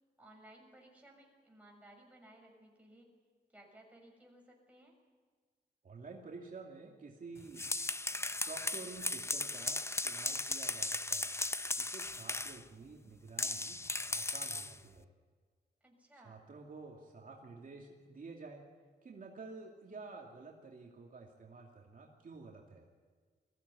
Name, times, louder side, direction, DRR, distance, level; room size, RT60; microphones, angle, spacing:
voice 1, 0.2-3.1 3.5-4.9 15.8-16.4, right 1 dB, 10° right, 0 dB, 6.6 m, -59 dB
voice 2, 5.8-7.7 8.4-11.4 11.8-13.8 14.1-15.1 16.2-18.6 19.0-22.9, right 4 dB, 55° right, -1 dB, 2.6 m, -50 dB
sound 1, 7.4-12.6 13.4-14.8, left 2 dB, 15° left, 0.6 m, -37 dB
21.5 x 16.0 x 9.8 m, 1.5 s
wide cardioid pair, 100°, 17 cm